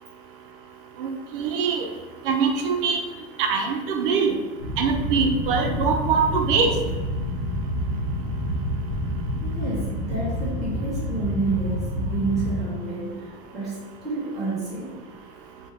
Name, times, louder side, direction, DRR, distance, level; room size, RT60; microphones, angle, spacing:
voice 1, 1.0-1.9 2.2-3.0 3.4-4.3 4.8-6.7, right 5 dB, 60° right, 4 dB, 0.5 m, -23 dB
sound 1, 4.6-12.6, equal, 70° left, 1.1 m, -28 dB
voice 2, 9.4-15.0, right 3 dB, ahead, -11 dB, 0.4 m, -29 dB
3.3 x 2.2 x 3.1 m, 1.3 s
supercardioid pair, 175°, 31 cm